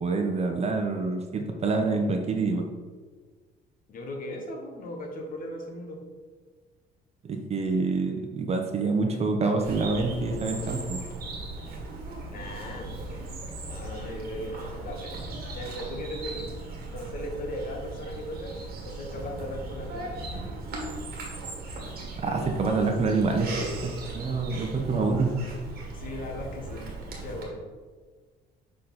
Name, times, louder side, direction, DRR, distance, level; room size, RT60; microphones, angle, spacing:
voice 1, 0.0-2.6 7.2-11.0 22.2-23.5 23.8-25.3, right 3 dB, 40° right, 4 dB, 0.9 m, -26 dB
voice 2, 3.9-6.0 12.3-12.9 13.6-15.2 15.5-16.5 16.9-18.6 18.8-20.2 25.9-26.9 27.2-27.7, left 1 dB, 55° left, 2 dB, 1.3 m, -37 dB
Bird vocalization bird call bird song, 9.6-27.4, right 2 dB, 70° right, 1.8 m, -37 dB
6.7 x 4.1 x 4.2 m, 1.4 s
cardioid pair, 110°, 17 cm